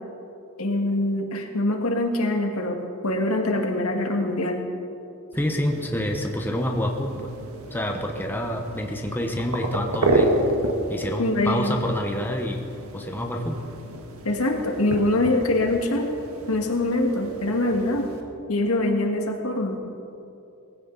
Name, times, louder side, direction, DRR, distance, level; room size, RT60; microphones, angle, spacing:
voice 1, 0.6-2.8 3.0-4.6 11.2-11.8 14.2-16.1 16.5-18.1 18.5-19.8, left 1 dB, 75° left, 2 dB, 1.9 m, -24 dB
voice 2, 5.3-7.3 7.7-10.3 10.9-12.7 12.9-13.6, left 1 dB, 10° left, 2 dB, 1.0 m, -27 dB
sound 1, 5.3-18.2, right 2 dB, 75° right, 1.6 m, -30 dB
19.0 x 16.0 x 4.1 m, 2.7 s
head